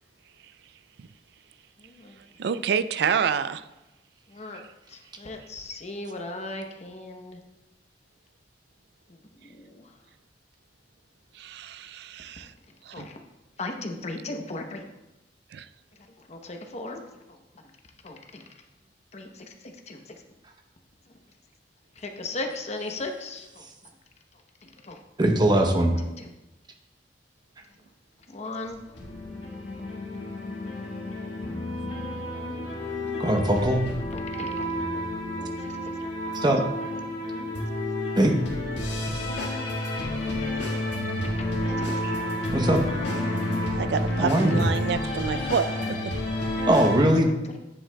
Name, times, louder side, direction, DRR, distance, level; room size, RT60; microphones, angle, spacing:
voice 1, 1.8-2.2 4.3-4.6 4.9-7.4 9.4-9.9 12.9-13.1 13.6-14.8 16.3-17.4 18.0-18.4 19.1-20.0 22.0-23.6 24.6-25.0 25.5-25.8 26.2-26.3 28.3-28.8 31.4-31.5 32.8-32.9 34.1-35.0 35.4-35.5 41.7-42.2 44.2-44.3 45.2-46.0 47.2-47.6, left 2 dB, 40° left, 4 dB, 0.8 m, -37 dB
voice 2, 2.4-3.6 11.4-12.5 12.9-13.1 15.5-15.6 43.7-46.0, right 6 dB, 70° right, 13 dB, 0.4 m, -28 dB
voice 3, 25.2-25.9 33.2-33.8 36.3-36.6 38.2-38.4 42.5-42.8 44.2-44.6 46.7-47.3, right 1 dB, 25° right, 3 dB, 0.9 m, -20 dB
sound 1, 28.7-47.0, left 1 dB, 85° left, 1.7 m, -30 dB
9.7 x 7.7 x 2.3 m, 0.99 s
head